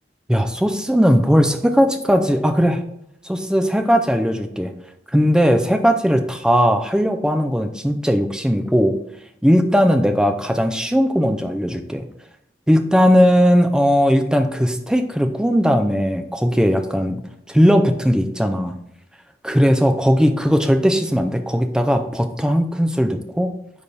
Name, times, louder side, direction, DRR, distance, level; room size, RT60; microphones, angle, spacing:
voice 1, 0.3-2.8 3.2-4.7 5.1-9.0 9.4-12.1 12.7-17.2 17.5-18.7 19.4-23.5, equal, 5° right, 7 dB, 0.5 m, -18 dB
9.7 x 3.4 x 4.1 m, 0.77 s
head